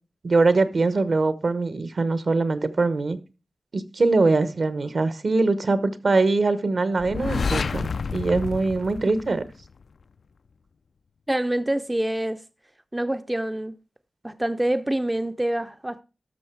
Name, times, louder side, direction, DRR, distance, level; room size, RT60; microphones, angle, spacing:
voice 1, 0.2-3.2 3.7-9.4, right 3 dB, 65° right, 1.0 m, -22 dB
sound 1, 7.0-9.8, left 5 dB, 85° left, 0.4 m, -29 dB
voice 2, 11.3-12.4 12.9-13.7 14.2-16.0, right 1 dB, 15° right, 0.4 m, -26 dB
12.5 x 6.1 x 4.6 m
wide cardioid pair, 105°, 0 cm